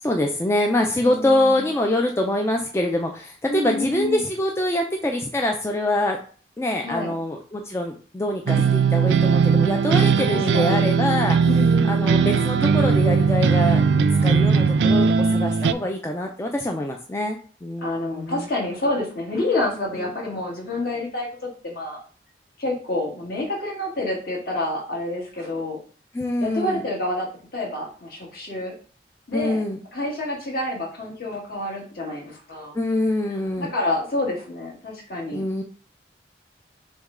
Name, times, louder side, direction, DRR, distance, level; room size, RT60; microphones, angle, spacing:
voice 1, 0.0-6.2 6.6-11.4 11.9-18.5 20.0-20.1 26.1-26.8 29.3-29.8 32.7-33.7 35.3-35.6, left 1 dB, 15° left, 2 dB, 0.3 m, -25 dB
voice 2, 1.0-1.6 3.5-4.2 6.8-7.1 10.3-10.9 11.4-12.3 17.8-22.0 22.6-25.8 26.4-28.7 29.3-29.6 29.9-32.7 33.6-35.6, left 1 dB, 55° left, -2 dB, 1.5 m, -28 dB
sound 1, 8.5-15.7, right 5 dB, 80° right, 0.3 m, -19 dB
6.1 x 2.2 x 3.6 m, 0.41 s
head